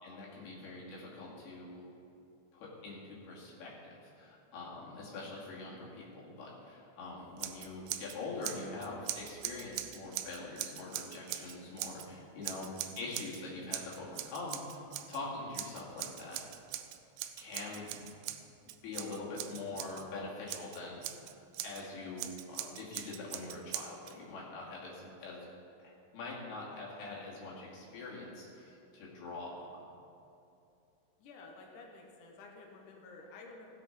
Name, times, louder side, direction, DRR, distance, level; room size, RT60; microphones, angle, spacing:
voice 1, 0.0-1.8 2.5-16.4 17.4-18.5 18.8-21.1 21.6-25.4 25.8-29.9, left 3 dB, 60° left, -5 dB, 4.0 m, -44 dB
Scissors, 7.4-8.2 8.4-12.1 12.4-13.4 13.7-15.2 15.5-20.0 20.5-21.8 22.2-24.1, right 13 dB, 80° right, 2.9 m, -41 dB
voice 2, 31.2-33.7, left 3 dB, 75° left, 0 dB, 1.8 m, -52 dB
16.0 x 8.1 x 5.5 m, 2.8 s
omnidirectional pair, 5.6 m